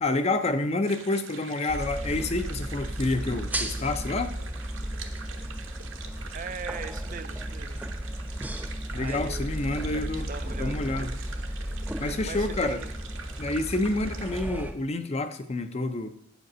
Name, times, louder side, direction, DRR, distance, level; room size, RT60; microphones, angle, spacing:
voice 1, 0.0-4.3 8.9-11.1 12.0-12.8 13.4-16.1, left 2 dB, 30° left, 9 dB, 0.5 m, -28 dB
sound 1, 0.9-14.4, right 6 dB, 60° right, 0.9 m, -45 dB
sound 2, 1.7-14.7, equal, 5° right, 0.7 m, -34 dB
voice 2, 6.3-7.8 8.9-9.5 9.9-11.3 12.0-12.9 14.3-14.5, right 5 dB, 40° right, 11 dB, 0.4 m, -40 dB
8.8 x 5.2 x 6.1 m, 0.74 s
head